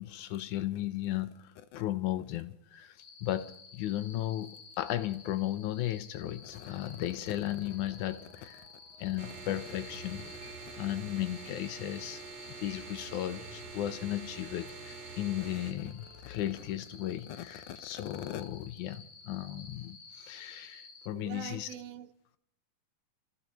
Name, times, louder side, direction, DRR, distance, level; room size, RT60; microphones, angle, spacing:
voice 1, 0.0-8.7 9.0-12.2 12.6-21.7, left 13 dB, 80° left, 2.1 m, -35 dB
sound 1, 3.0-21.1, left 4 dB, 60° left, 2.5 m, -53 dB
sound 2, 6.2-16.8, left 2 dB, 5° right, 2.1 m, -58 dB
sound 3, 9.2-15.7, right 5 dB, 60° right, 2.6 m, -46 dB
voice 2, 21.1-22.4, right 10 dB, 80° right, 2.2 m, -45 dB
29.5 x 14.0 x 3.0 m
omnidirectional pair, 3.6 m